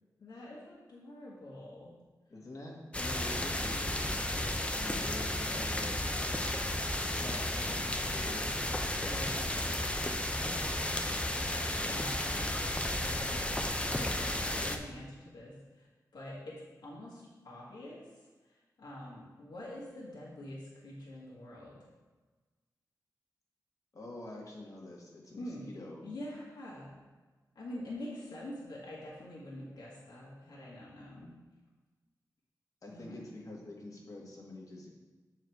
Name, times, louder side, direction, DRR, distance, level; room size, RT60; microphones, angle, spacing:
voice 1, 0.2-1.9 8.9-9.6 10.4-10.8 11.8-12.6 12.9-15.9 16.1-21.8 25.4-25.7 26.0-26.9 27.6-31.3 32.9-33.2, left 1 dB, 80° left, -6 dB, 1.7 m, -46 dB
voice 2, 2.3-6.0 7.1-8.5 23.9-26.0 32.8-34.9, left 2 dB, 55° left, -2 dB, 1.7 m, -46 dB
sound 1, 2.9-14.8, left 1 dB, 15° left, 0.6 m, -33 dB
7.8 x 4.7 x 4.7 m, 1.3 s
wide cardioid pair, 95°, 7 cm